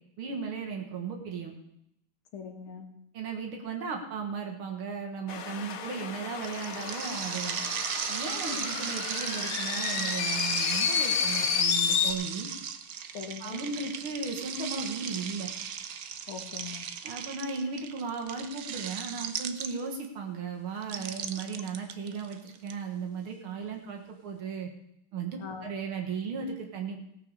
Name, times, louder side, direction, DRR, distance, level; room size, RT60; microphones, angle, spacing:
voice 1, 0.2-1.6 3.1-7.6 8.1-12.5 13.4-15.5 17.0-24.7 25.1-27.0, right 5 dB, 75° right, 2 dB, 2.4 m, -36 dB
voice 2, 2.3-2.9 8.5-8.6 13.1-13.6 16.3-16.9 25.4-25.7, left 6 dB, 75° left, 5 dB, 2.4 m, -41 dB
sound 1, 5.3-12.1, left 7 dB, 60° left, 1.0 m, -31 dB
sound 2, 6.4-20.1 20.8-22.7, right 8 dB, 60° right, 1.0 m, -37 dB
17.5 x 6.9 x 6.6 m, 0.78 s
omnidirectional pair, 2.4 m